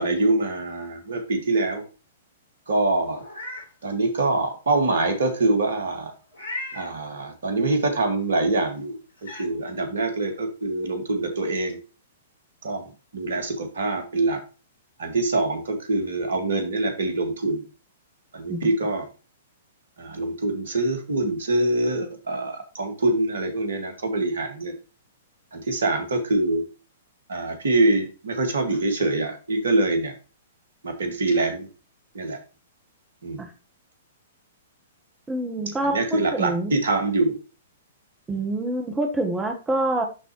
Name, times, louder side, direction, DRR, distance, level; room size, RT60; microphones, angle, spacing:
voice 1, 0.0-1.9 2.7-3.2 3.8-6.1 6.7-9.0 9.2-11.8 12.6-14.4 15.0-17.6 18.3-19.1 20.0-24.7 25.5-26.6 27.3-30.1 30.8-31.7 32.1-32.4 33.2-33.4 35.8-37.4, right 2 dB, 65° right, 6 dB, 1.8 m, -24 dB
Meow, 3.1-3.7 4.2-4.3 6.3-6.9 8.5-8.6 9.2-9.5, left 2 dB, 75° left, 3.9 m, -35 dB
voice 2, 35.3-36.0 36.3-36.7 38.3-40.0, right 2 dB, 10° right, 4 dB, 1.2 m, -26 dB
11.5 x 4.0 x 3.0 m, 0.32 s
figure-of-eight pair, 110°, 0 cm